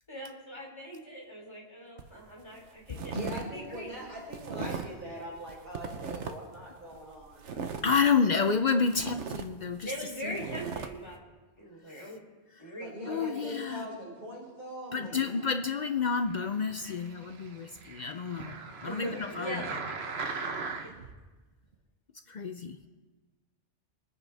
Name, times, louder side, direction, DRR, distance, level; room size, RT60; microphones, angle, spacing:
voice 1, 0.1-3.1 3.4-4.0 7.5-7.8 9.8-11.2 11.6-12.2 12.6-13.6 18.8-19.6 20.0-20.2, equal, 25° left, -2 dB, 3.2 m, -41 dB
sound 1, 2.0-2.2 2.6-3.5 3.7-5.0 5.4-6.6 6.9-8.6 8.9-10.9, right 6 dB, 85° right, 1.2 m, -38 dB
voice 2, 3.1-7.8 12.8-15.4 16.8-16.9 18.4-18.6 19.1-19.2, equal, 50° right, -6 dB, 5.8 m, -42 dB
voice 3, 7.8-10.4 11.9-12.0 12.6-12.7 13.1-13.9 14.9-19.6 22.3-22.8, left 5 dB, 50° left, 8 dB, 0.6 m, -30 dB
sound 2, 16.5-21.1 21.7-21.8, right 4 dB, 65° right, 1.2 m, -39 dB
22.5 x 9.3 x 3.4 m, 1.2 s
omnidirectional pair, 1.2 m